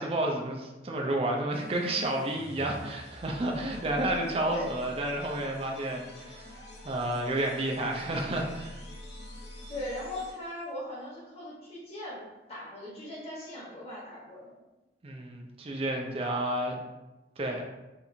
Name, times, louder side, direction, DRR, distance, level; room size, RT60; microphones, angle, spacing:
voice 1, 0.0-6.4 6.8-8.8 15.0-16.8 17.4-17.6, right 1 dB, 35° right, 0 dB, 0.4 m, -31 dB
sound 1, 1.5-10.7, left 1 dB, 90° left, 1.0 m, -46 dB
voice 2, 9.7-12.2 12.5-14.6, left 1 dB, 35° left, -6 dB, 1.1 m, -39 dB
4.3 x 2.5 x 2.6 m, 1.1 s
head